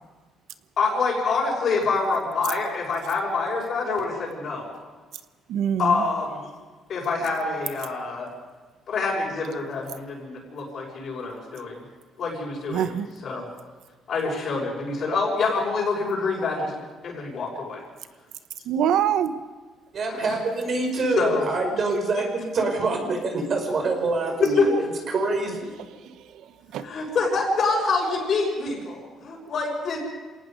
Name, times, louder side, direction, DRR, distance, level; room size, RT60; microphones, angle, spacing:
voice 1, 0.8-4.7 5.8-6.4 6.9-8.3 8.9-11.8 12.2-12.8 13.2-13.5 14.1-17.8 20.1-20.2 21.2-21.4 24.6-24.7 26.8-30.0, left 4 dB, 50° left, -5 dB, 6.1 m, -26 dB
voice 2, 5.5-6.1 12.7-13.1 18.6-19.4 26.0-26.9, right 9 dB, 80° right, 11 dB, 1.1 m, -25 dB
voice 3, 19.9-25.7, right 3 dB, 45° right, 3 dB, 4.8 m, -25 dB
27.5 x 18.5 x 5.3 m, 1.3 s
cardioid pair, 140°, 0 cm